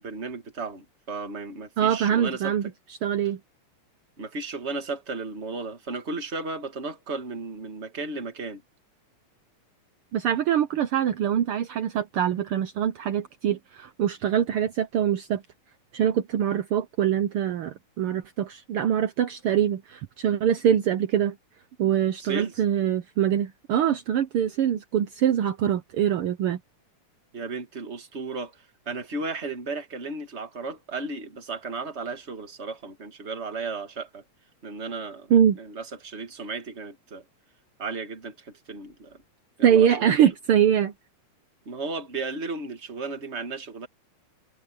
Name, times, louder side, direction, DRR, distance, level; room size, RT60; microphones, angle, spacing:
voice 1, 0.0-2.7 4.2-8.6 22.2-22.6 27.3-34.2 34.6-37.2 37.8-39.2 39.6-40.2 41.7-43.9, right 3 dB, 25° right, 1.8 m, -34 dB
voice 2, 1.8-2.7 3.0-3.4 10.1-15.4 15.9-21.4 21.8-26.6 35.3-35.6 39.6-40.9, right 9 dB, 75° right, 1.3 m, -23 dB
omnidirectional pair, 3.6 m